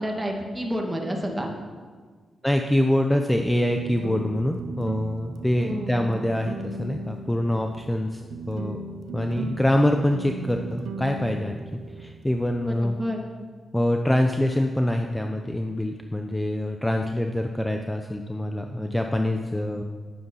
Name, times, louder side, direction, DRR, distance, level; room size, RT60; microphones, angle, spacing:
voice 1, 0.0-1.5 5.6-6.0 12.7-13.2, equal, 15° right, 1 dB, 2.3 m, -29 dB
voice 2, 2.4-8.2 8.5-8.8 9.1-13.0 13.7-19.8, left 1 dB, 10° left, 4 dB, 0.8 m, -25 dB
sound 1, 3.7-13.0, right 3 dB, 85° right, 0.7 m, -37 dB
10.5 x 9.4 x 5.7 m, 1.5 s
cardioid pair, 70°, 0 cm